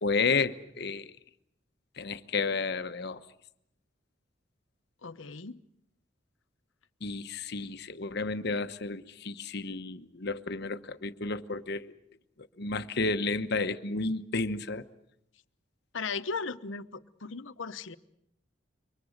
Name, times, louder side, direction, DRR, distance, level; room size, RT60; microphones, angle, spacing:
voice 1, 0.0-1.1 2.0-3.2 7.0-11.9 12.6-14.8, left 4 dB, 60° left, 1.0 m, -31 dB
voice 2, 5.0-5.6 15.9-18.0, left 4 dB, 90° left, 1.0 m, -37 dB
27.5 x 24.0 x 6.5 m
head